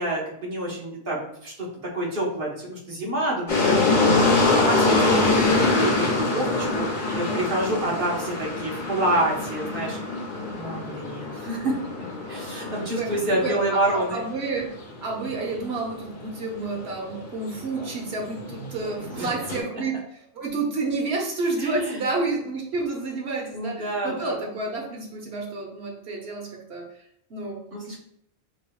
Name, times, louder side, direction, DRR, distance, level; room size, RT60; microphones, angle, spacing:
voice 1, 0.0-1.7 1.9-14.2 19.1-19.3 21.6-22.0 23.5-24.3 27.7-28.0, right 1 dB, 60° right, -3 dB, 1.2 m, -28 dB
sound 1, 3.5-19.6, left 3 dB, 50° left, 0.9 m, -25 dB
voice 2, 13.0-14.7 15.0-26.8 27.3-27.6, right 3 dB, 75° right, -1 dB, 1.2 m, -30 dB
5.4 x 2.7 x 2.3 m, 0.70 s
omnidirectional pair, 1.1 m